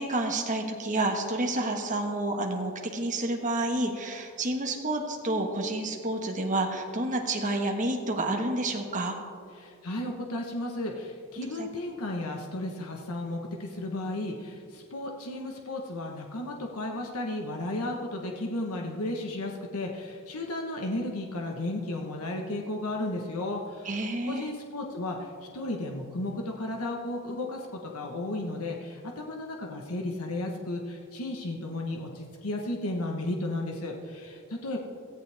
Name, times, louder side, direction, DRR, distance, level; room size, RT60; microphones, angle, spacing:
voice 1, 0.0-9.2 11.6-11.7 23.8-24.5, right 2 dB, 35° right, 2 dB, 1.6 m, -29 dB
voice 2, 9.5-23.9 24.2-34.8, left 1 dB, 75° left, 1 dB, 1.3 m, -34 dB
17.5 x 14.0 x 3.5 m, 2.2 s
head